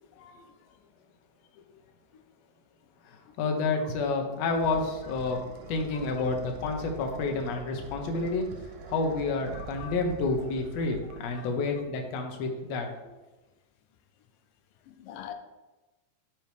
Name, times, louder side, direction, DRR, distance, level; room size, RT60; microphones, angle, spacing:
voice 1, 0.2-0.5 1.6-1.7 3.8-4.3 5.1-5.4 5.7-6.1 6.8-6.9 9.5-9.9 11.0-11.5 14.9-15.3, left 10 dB, 85° left, 7 dB, 2.3 m, -47 dB
voice 2, 3.0-5.4 5.7-8.5 8.9-12.9, left 3 dB, 65° left, 3 dB, 1.8 m, -29 dB
sound 1, 4.1-11.8, right 4 dB, 80° right, 2.2 m, -45 dB
11.0 x 4.5 x 3.4 m, 1.1 s
omnidirectional pair, 3.9 m